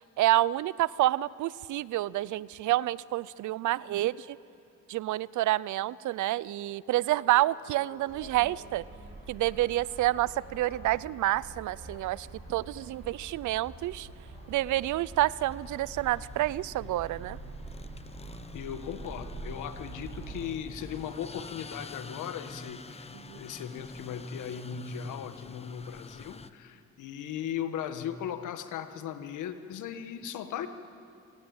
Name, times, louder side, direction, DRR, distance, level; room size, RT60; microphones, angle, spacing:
voice 1, 0.2-4.4 4.9-8.8 9.3-14.1 14.5-17.4 23.1-23.4, right 15 dB, 75° right, 21 dB, 0.6 m, -28 dB
sound 1, 7.0-16.8, left 1 dB, 35° left, 5.2 m, -57 dB
sound 2, 7.7-7.8 8.3-26.5, left 4 dB, 20° left, 0.8 m, -48 dB
sound 3, 8.1-20.5, right 3 dB, 55° right, 7.4 m, -46 dB
voice 2, 18.5-23.1 23.3-30.7, left 9 dB, 80° left, 9 dB, 1.5 m, -37 dB
25.5 x 19.0 x 8.9 m, 2.5 s
cardioid pair, 90°, 30 cm